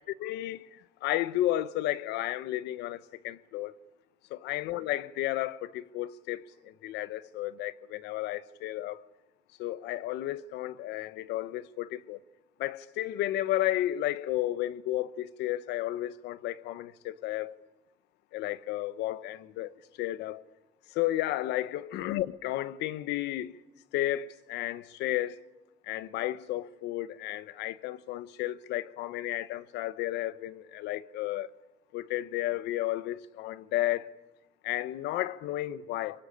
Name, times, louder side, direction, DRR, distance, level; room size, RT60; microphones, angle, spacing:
voice 1, 0.2-3.7 4.3-9.0 9.6-12.2 12.6-17.5 18.3-20.4 20.9-23.6 23.9-25.4 25.8-31.5 31.9-34.1 34.6-36.2, left 14 dB, 85° left, 1.0 m, -33 dB
24.5 x 24.0 x 9.9 m
cardioid pair, 110°, 17 cm